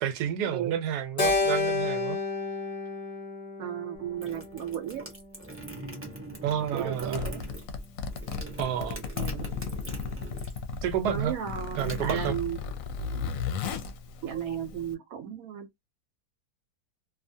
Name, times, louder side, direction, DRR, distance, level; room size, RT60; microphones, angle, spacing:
voice 1, 0.0-2.2 6.4-7.4 8.6-9.0 10.8-11.3 11.8-12.4, right 9 dB, 90° right, 1.2 m, -30 dB
Keyboard (musical), 1.2-5.6, left 3 dB, 45° left, 0.5 m, -31 dB
voice 2, 3.6-5.0 6.7-7.4 9.2-9.5 11.0-12.6 14.2-15.8, right 9 dB, 70° right, 1.0 m, -34 dB
sound 1, 3.9-10.7 11.0-12.9, right 2 dB, 15° right, 0.5 m, -42 dB
Zipper (clothing), 7.0-14.9, left 5 dB, 70° left, 0.9 m, -35 dB
2.7 x 2.4 x 2.6 m
omnidirectional pair, 1.7 m